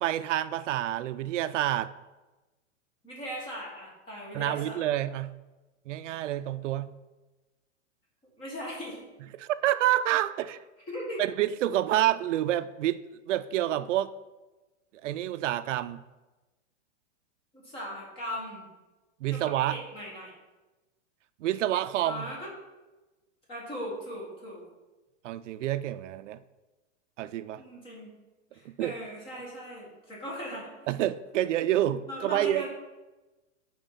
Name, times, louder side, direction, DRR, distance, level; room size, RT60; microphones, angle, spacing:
voice 1, 0.0-1.9 4.3-5.3 5.9-7.0 9.4-10.6 11.2-14.1 15.0-16.0 19.2-19.8 21.4-22.3 25.2-26.4 27.2-27.6 28.6-29.0 30.9-32.7, right 13 dB, 75° right, 14 dB, 0.5 m, -28 dB
voice 2, 3.0-4.8 8.4-9.0 10.9-11.2 17.5-18.7 19.3-20.3 22.0-22.5 23.5-24.6 27.6-28.1 28.5-30.7 32.1-32.7, equal, 15° left, -3 dB, 1.5 m, -39 dB
9.0 x 4.6 x 4.0 m, 1.1 s
supercardioid pair, 175°, 37 cm